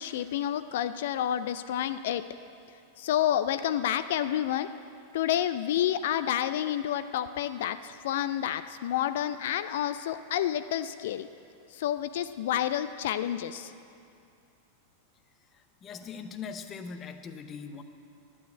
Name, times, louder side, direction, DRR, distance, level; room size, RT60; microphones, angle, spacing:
voice 1, 0.0-2.3 3.0-4.7 5.1-11.3 11.7-13.7, left 11 dB, 55° left, 12 dB, 0.4 m, -29 dB
voice 2, 15.8-17.8, left 6 dB, 25° left, 9 dB, 0.8 m, -40 dB
11.5 x 8.5 x 8.6 m, 2.5 s
figure-of-eight pair, 90°, 0 cm